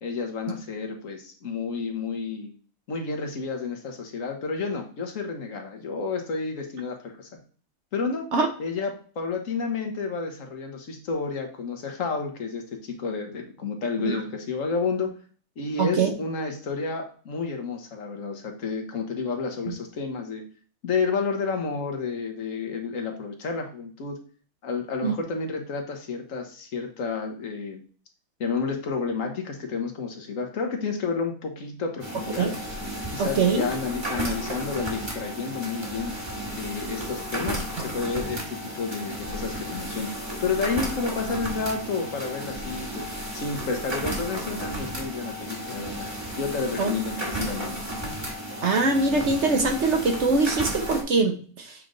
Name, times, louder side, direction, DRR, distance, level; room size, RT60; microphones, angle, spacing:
voice 1, 0.0-2.5 2.9-7.3 7.9-8.3 8.6-15.1 15.6-20.4 20.8-24.2 24.6-27.8 28.4-32.5 33.1-36.1 36.5-43.1 43.3-46.1 46.4-47.7, left 4 dB, 65° left, 3 dB, 1.4 m, -30 dB
voice 2, 15.8-16.1 19.7-19.8 25.0-25.1 32.4-32.5 33.2-33.6 46.8-46.9 48.6-51.7, right 4 dB, 55° right, 4 dB, 1.1 m, -23 dB
sound 1, 32.0-51.0, right 1 dB, 20° right, 1.3 m, -33 dB
7.5 x 3.3 x 3.9 m, 0.41 s
omnidirectional pair, 1.5 m